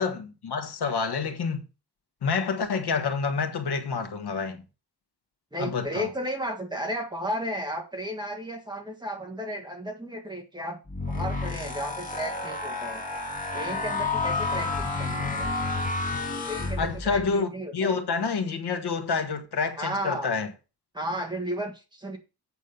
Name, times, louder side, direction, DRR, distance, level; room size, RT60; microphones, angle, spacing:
voice 1, 0.0-1.7 2.2-4.6 5.6-6.1 16.8-20.5, left 5 dB, 70° left, 1.5 m, -28 dB
voice 2, 5.5-10.8 11.1-13.0 13.5-15.5 16.4-18.0 19.8-20.3 20.9-22.2, equal, 10° right, 1.7 m, -34 dB
sound 1, 10.9-17.3, left 3 dB, 20° left, 1.9 m, -30 dB
8.5 x 6.2 x 5.2 m
wide cardioid pair, 165°, 41 cm